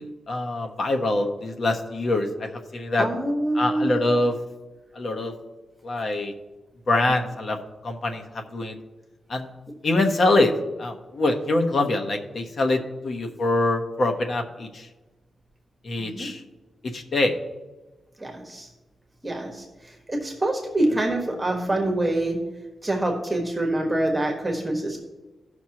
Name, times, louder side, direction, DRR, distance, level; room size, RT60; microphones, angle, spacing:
voice 1, 0.0-3.1 3.5-4.3 4.9-5.3 5.8-6.3 6.9-7.6 7.8-8.7 9.3-9.5 9.8-10.5 10.8-14.9 15.8-16.4 16.9-17.4, left 2 dB, 50° left, 4 dB, 1.1 m, -24 dB
voice 2, 3.0-4.0 16.0-16.3 18.2-18.7 19.2-22.4 22.8-25.0, right 1 dB, 10° right, 0 dB, 1.5 m, -26 dB
16.5 x 6.2 x 2.9 m, 1.2 s
wide cardioid pair, 155°, 0 cm